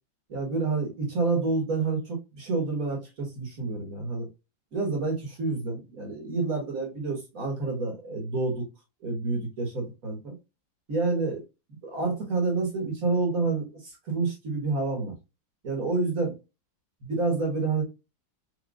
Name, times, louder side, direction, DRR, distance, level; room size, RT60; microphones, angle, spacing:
voice 1, 0.3-4.3 4.7-8.7 9.0-10.3 10.9-11.4 11.8-15.1 15.6-16.3 17.0-17.8, right 3 dB, 50° right, 1.7 m, -28 dB
5.0 x 2.9 x 2.3 m
omnidirectional pair, 2.0 m